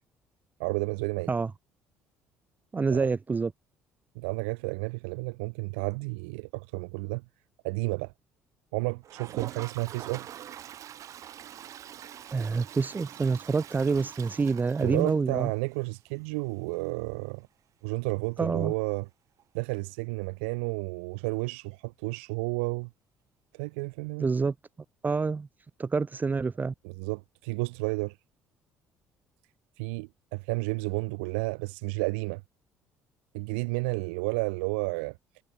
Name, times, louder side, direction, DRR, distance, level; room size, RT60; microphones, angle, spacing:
voice 1, 0.6-1.3 2.9-3.1 4.1-7.2 7.6-8.1 8.7-10.3 14.8-17.5 17.8-19.1 19.5-22.9 23.5-24.3 26.8-28.2 29.8-32.4 33.3-35.2, right 30 dB, 80° right, 1.5 m, -31 dB
voice 2, 2.7-3.5 12.3-15.5 18.4-18.7 24.2-24.5 25.0-25.5 25.8-26.7, right 4 dB, 30° right, 0.9 m, -27 dB
Toilet flush, 9.0-15.8 16.1-16.2 16.4-16.5 16.7-16.8 19.4-19.5 20.8-20.9, right 10 dB, 55° right, 2.2 m, -44 dB
hypercardioid pair, 60°, 6 cm